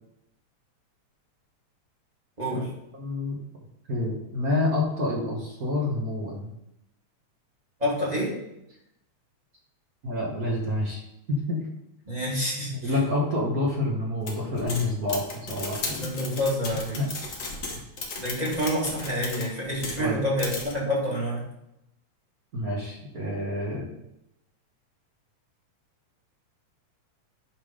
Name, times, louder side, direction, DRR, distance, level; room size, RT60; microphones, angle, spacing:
voice 1, 2.4-2.7 7.8-8.3 12.1-13.0 16.0-17.0 18.1-21.4, equal, 15° right, -5 dB, 1.7 m, -28 dB
voice 2, 3.0-3.4 3.9-6.5 10.0-11.0 11.3-11.6 12.8-16.1 17.0-17.1 20.0-20.2 22.5-23.9, left 2 dB, 50° right, -3 dB, 1.1 m, -28 dB
sound 1, 14.3-20.1 20.4-20.7, left 3 dB, 80° left, 0.7 m, -35 dB
10.0 x 3.8 x 5.0 m, 0.84 s
omnidirectional pair, 3.3 m